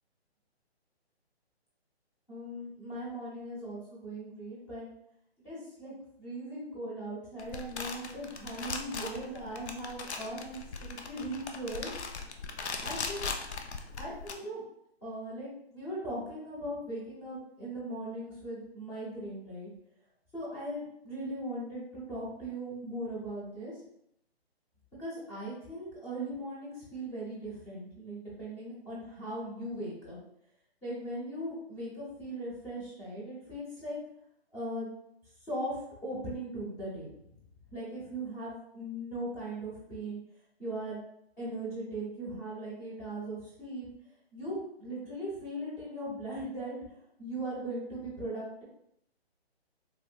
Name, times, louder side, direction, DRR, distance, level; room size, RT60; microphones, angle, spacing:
voice 1, 2.3-4.9 5.4-5.9 6.2-11.9 12.8-13.3 14.0-14.6 15.0-19.7 20.3-23.7 25.0-30.2 30.8-34.0 34.5-34.9 35.5-37.1 37.7-40.2 40.6-41.0 41.4-43.9 44.3-46.8 47.2-48.6, right 1 dB, 10° left, -10 dB, 0.9 m, -39 dB
sound 1, 7.4-14.3, left 4 dB, 85° left, 0.6 m, -39 dB
3.4 x 2.4 x 2.4 m, 0.75 s
hypercardioid pair, 155°, 33 cm